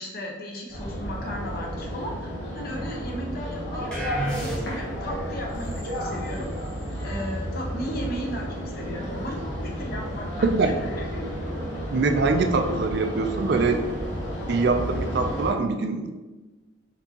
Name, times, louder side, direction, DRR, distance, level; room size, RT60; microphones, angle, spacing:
voice 1, 0.0-3.9 4.4-6.5 7.0-11.5 11.9-12.0 12.3-12.7, equal, 50° left, 0 dB, 0.8 m, -36 dB
sound 1, 0.7-15.5, equal, 70° left, 1.3 m, -32 dB
sound 2, 3.9-5.1, right 1 dB, 5° left, 0.9 m, -31 dB
voice 2, 10.4-10.8 11.3-11.4 11.9-13.8 14.5-16.1, right 3 dB, 60° right, 6 dB, 0.4 m, -23 dB
4.4 x 4.0 x 2.9 m, 1.2 s
head